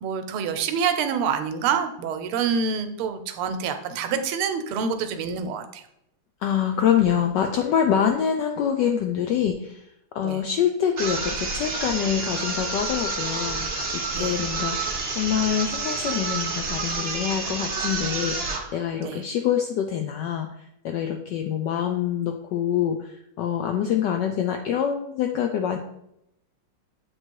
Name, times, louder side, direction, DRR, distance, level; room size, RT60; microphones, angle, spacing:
voice 1, 0.0-5.8 10.2-10.4 14.1-14.4 19.0-19.2, right 6 dB, 80° right, 8 dB, 1.5 m, -27 dB
voice 2, 6.4-9.9 10.1-20.5 20.8-25.8, left 9 dB, 80° left, 5 dB, 1.0 m, -25 dB
sound 1, 11.0-18.7, right 3 dB, 60° right, 0.6 m, -29 dB
7.5 x 3.1 x 4.5 m, 0.79 s
omnidirectional pair, 2.4 m